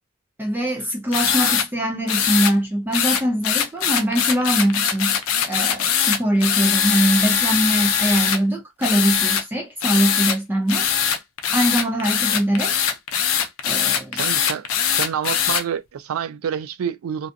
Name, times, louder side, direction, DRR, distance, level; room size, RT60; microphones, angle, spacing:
voice 1, 0.4-5.2 5.5-10.9 11.5-12.8 13.6-14.2, right 1 dB, 10° right, 0.4 m, -22 dB
sound 1, 1.1-1.7 2.1-2.5 2.9-8.4 8.8-9.4 9.8-10.4 10.7-15.6, left 8 dB, 75° left, 0.5 m, -21 dB
voice 2, 1.2-1.6 14.1-14.7 14.9-17.3, right 8 dB, 90° right, 0.4 m, -28 dB
2.6 x 2.3 x 2.5 m
head